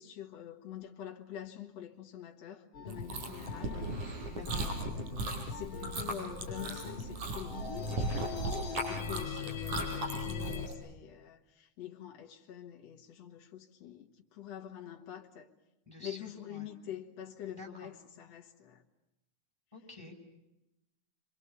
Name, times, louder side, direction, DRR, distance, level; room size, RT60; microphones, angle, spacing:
voice 1, 0.0-3.8 4.5-8.0 8.7-15.5 16.0-18.8, left 10 dB, 65° left, 2.5 m, -46 dB
sound 1, 2.7-10.7, left 5 dB, 45° left, 2.7 m, -41 dB
Chewing mastication, 2.9-10.7, right 2 dB, 85° right, 5.8 m, -38 dB
voice 2, 4.3-4.7 15.9-16.7 17.4-17.9 19.7-20.1, left 1 dB, 5° right, 5.4 m, -49 dB
29.5 x 24.5 x 6.9 m
omnidirectional pair, 3.4 m